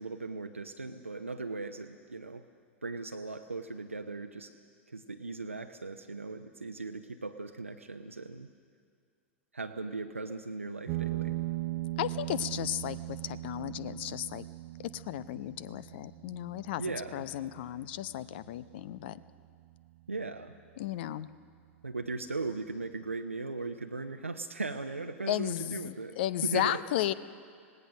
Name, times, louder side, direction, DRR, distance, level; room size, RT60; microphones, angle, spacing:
voice 1, 0.0-2.4 2.8-4.5 4.9-8.5 9.5-11.4 16.8-17.3 20.1-20.6 21.8-26.8, right 3 dB, 85° right, 6 dB, 0.7 m, -38 dB
sound 1, 10.9-19.9, right 18 dB, 45° right, 0.6 m, -39 dB
voice 2, 12.0-14.5 14.8-16.8 17.1-19.2 20.8-21.3 25.3-27.1, left 13 dB, 55° left, 16 dB, 0.7 m, -34 dB
26.0 x 18.5 x 6.4 m, 2.2 s
figure-of-eight pair, 90°, 7 cm